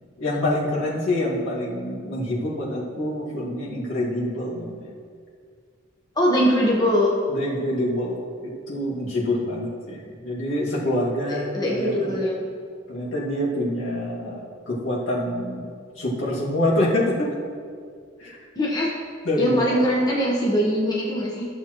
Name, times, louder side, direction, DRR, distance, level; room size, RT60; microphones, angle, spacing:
voice 1, 0.2-4.9 7.3-12.2 12.9-15.7 16.0-17.3 18.2-18.4 19.2-19.8, left 1 dB, 70° left, -6 dB, 2.1 m, -26 dB
voice 2, 6.1-7.1 11.3-12.4 18.5-18.9 19.4-21.5, equal, 20° left, -4 dB, 1.1 m, -22 dB
14.0 x 7.0 x 3.1 m, 2.1 s
head